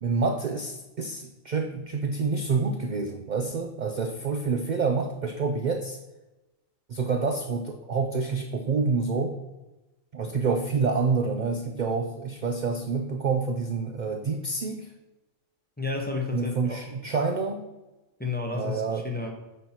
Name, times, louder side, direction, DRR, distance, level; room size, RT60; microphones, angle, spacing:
voice 1, 0.0-6.0 6.9-9.4 10.1-14.9 16.3-17.7 18.5-19.0, right 4 dB, 65° right, 5 dB, 0.4 m, -28 dB
voice 2, 15.8-16.8 18.2-19.3, left 4 dB, 10° left, 0 dB, 0.7 m, -31 dB
8.3 x 3.0 x 5.6 m, 1.1 s
omnidirectional pair, 1.4 m